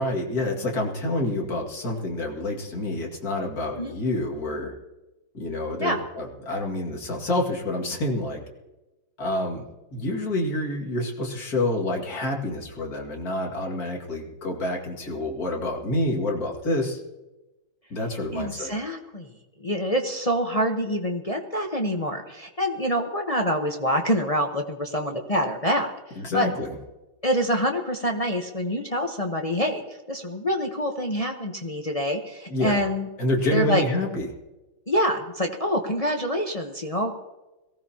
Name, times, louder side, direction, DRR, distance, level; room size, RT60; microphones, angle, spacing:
voice 1, 0.0-4.8 5.3-8.4 9.2-9.7 9.9-17.0 17.9-18.7 26.2-26.7 32.5-32.8 33.2-34.3, left 1 dB, 45° left, 0 dB, 2.5 m, -28 dB
voice 2, 18.3-19.3 19.6-25.9 26.3-26.5 27.2-29.8 30.1-33.1 33.5-33.8 34.9-37.2, equal, 30° left, 2 dB, 0.6 m, -26 dB
22.0 x 16.0 x 2.9 m, 1.1 s
omnidirectional pair, 2.3 m